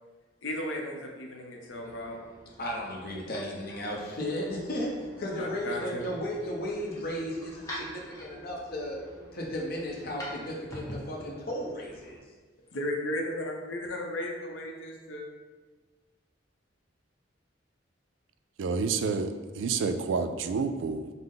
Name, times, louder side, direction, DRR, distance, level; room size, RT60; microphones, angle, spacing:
voice 1, 0.4-2.2 5.4-6.1 12.7-15.2, left 1 dB, 85° left, 0 dB, 0.6 m, -35 dB
sound 1, 1.6-12.2, equal, 20° left, 0.7 m, -46 dB
voice 2, 2.6-9.0 9.3-12.2, equal, 55° left, -2 dB, 0.8 m, -34 dB
voice 3, 18.6-21.1, right 4 dB, 80° right, 9 dB, 0.3 m, -29 dB
5.6 x 2.1 x 3.7 m, 1.4 s
head